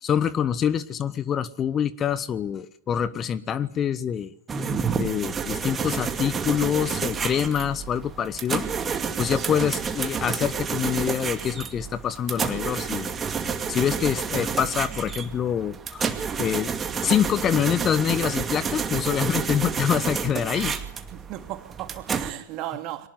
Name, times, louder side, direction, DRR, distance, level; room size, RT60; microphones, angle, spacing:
voice 1, 0.0-4.3 4.9-8.7 9.2-13.1 13.7-16.1 16.4-16.7 17.0-20.7, left 9 dB, 25° left, 1.1 m, -25 dB
sound 1, 4.5-22.3, right 6 dB, 20° right, 2.4 m, -29 dB
voice 2, 9.3-9.7 20.5-20.8 21.1-23.1, right 14 dB, 40° right, 2.8 m, -36 dB
24.0 x 19.0 x 9.4 m
figure-of-eight pair, 90°, 0 cm